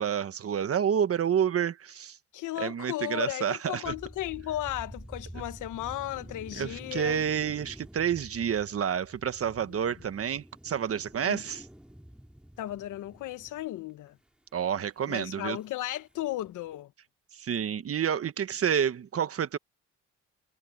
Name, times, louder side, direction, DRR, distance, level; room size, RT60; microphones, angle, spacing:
voice 1, 0.0-2.2 2.6-3.9 6.5-11.6 14.5-15.6 17.3-19.6, right 8 dB, 50° right, 1.3 m, -29 dB
voice 2, 2.3-7.2 9.7-9.8 11.2-11.4 12.6-14.2 15.1-16.9, left 14 dB, 85° left, 1.4 m, -35 dB
sound 1, 3.8-13.9 15.1-15.2 15.6-15.9 16.2-16.7, equal, 5° right, 4.8 m, -48 dB
cardioid pair, 90°, 30 cm